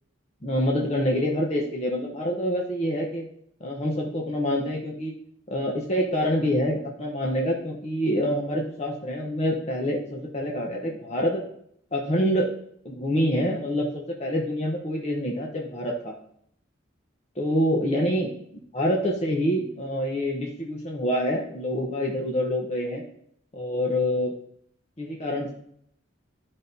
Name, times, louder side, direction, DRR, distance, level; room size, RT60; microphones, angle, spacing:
voice 1, 0.4-3.3 3.6-5.1 5.5-11.4 11.9-12.5 12.8-16.1 17.4-18.3 18.7-23.0 23.5-24.3 25.0-25.5, equal, 30° left, -1 dB, 0.8 m, -26 dB
12.0 x 5.4 x 2.7 m, 0.69 s
head